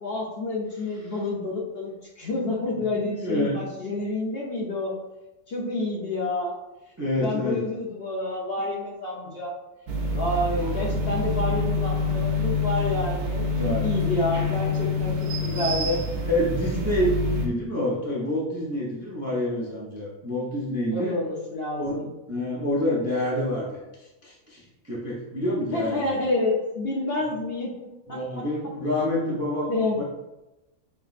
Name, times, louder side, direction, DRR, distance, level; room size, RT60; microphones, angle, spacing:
voice 1, 0.0-4.9 5.5-6.6 7.2-9.6 10.1-15.1 15.4-16.0 20.9-22.0 25.7-27.7 28.1-28.5 29.7-30.0, left 2 dB, 50° left, -3 dB, 0.8 m, -28 dB
voice 2, 2.8-3.6 7.0-7.6 13.5-13.9 16.3-21.1 21.8-23.8 24.2-26.1 28.1-30.0, left 1 dB, 15° right, -5 dB, 0.5 m, -28 dB
sound 1, 9.9-17.5, left 3 dB, 80° right, 0.4 m, -26 dB
5.8 x 3.0 x 2.5 m, 0.98 s
omnidirectional pair, 1.5 m